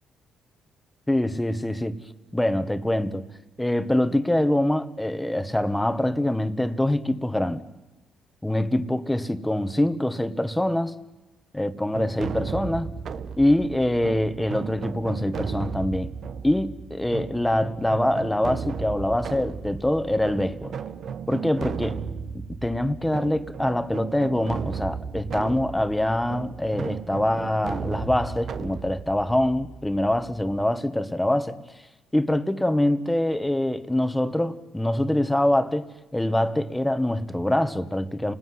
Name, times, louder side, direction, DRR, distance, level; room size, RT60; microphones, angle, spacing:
voice 1, 1.1-2.0 2.3-3.2 3.6-7.6 8.4-11.0 11.5-12.9 13.4-16.1 16.4-20.7 21.3-21.9 22.6-31.6 32.1-38.3, left 1 dB, 5° left, 1.7 m, -24 dB
sound 1, 11.9-30.6, right 6 dB, 60° right, 1.4 m, -35 dB
30.0 x 20.0 x 9.7 m
cardioid pair, 90°, 0 cm